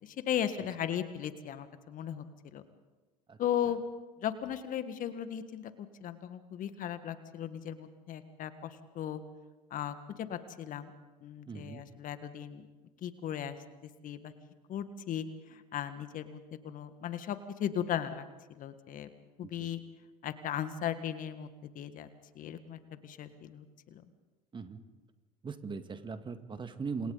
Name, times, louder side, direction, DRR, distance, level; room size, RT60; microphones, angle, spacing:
voice 1, 0.0-2.2 2.5-2.6 3.4-3.8 4.2-9.2 9.7-10.9 11.2-12.6 13.0-13.6 14.0-14.3 14.7-18.3 18.6-19.1 19.4-19.8 20.2-21.5 21.7-22.1 22.3-23.6 23.9-24.0, left 10 dB, 45° left, 10 dB, 1.6 m, -37 dB
voice 2, 11.5-11.8 19.4-19.7 24.5-24.8 25.4-27.1, right 5 dB, 25° right, 8 dB, 1.9 m, -40 dB
28.5 x 27.0 x 4.1 m, 1.2 s
hypercardioid pair, 75°, 18 cm